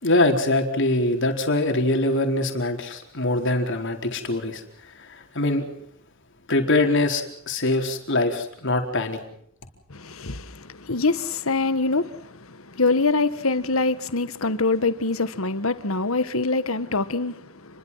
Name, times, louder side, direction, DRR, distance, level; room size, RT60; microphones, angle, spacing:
voice 1, 0.0-5.7 6.5-9.2, left 2 dB, 60° left, 4.4 m, -23 dB
voice 2, 9.9-17.8, left 3 dB, 75° left, 1.6 m, -25 dB
30.0 x 22.5 x 5.7 m
head